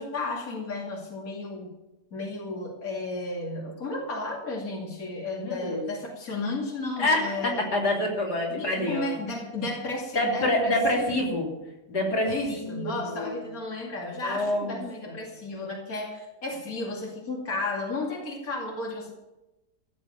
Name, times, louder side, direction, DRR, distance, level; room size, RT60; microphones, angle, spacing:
voice 1, 0.0-1.7 2.1-7.7 8.5-11.3 12.3-19.1, left 2 dB, 60° left, -1 dB, 2.9 m, -33 dB
voice 2, 5.3-5.8 7.0-9.1 10.2-11.5 11.9-13.3 14.2-14.8 15.1-15.2, left 1 dB, 90° left, -1 dB, 3.6 m, -27 dB
15.5 x 7.6 x 8.8 m, 1.0 s
omnidirectional pair, 1.7 m